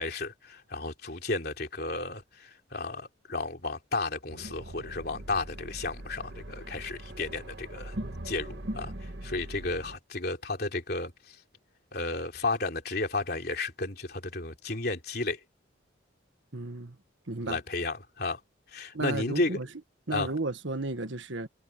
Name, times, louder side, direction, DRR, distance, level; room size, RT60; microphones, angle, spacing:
voice 1, 0.0-7.9 8.2-11.4 11.9-15.4 17.4-18.4 18.7-19.6 20.1-20.3, left 3 dB, 50° left, 3.4 m, -33 dB
sound 1, 4.3-10.0, right 1 dB, 60° right, 1.6 m, -41 dB
voice 2, 16.5-17.0 17.3-17.6 18.9-19.7 20.1-21.5, right 2 dB, 75° right, 1.6 m, -33 dB
head